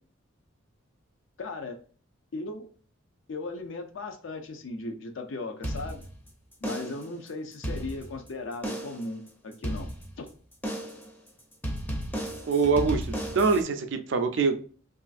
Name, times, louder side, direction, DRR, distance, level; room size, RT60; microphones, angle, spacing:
voice 1, 1.4-1.8 2.3-2.7 3.3-6.0 6.6-9.9 10.2-10.3, left 2 dB, 65° left, 5 dB, 0.4 m, -37 dB
sound 1, 5.6-6.3 6.6-7.1 7.5-8.3 8.6-9.1 9.6-10.3 10.6-11.1 11.6-13.6, equal, 10° left, 0.5 m, -34 dB
voice 2, 12.5-14.6, right 4 dB, 60° right, 8 dB, 0.4 m, -24 dB
3.1 x 2.4 x 2.4 m, 0.42 s
head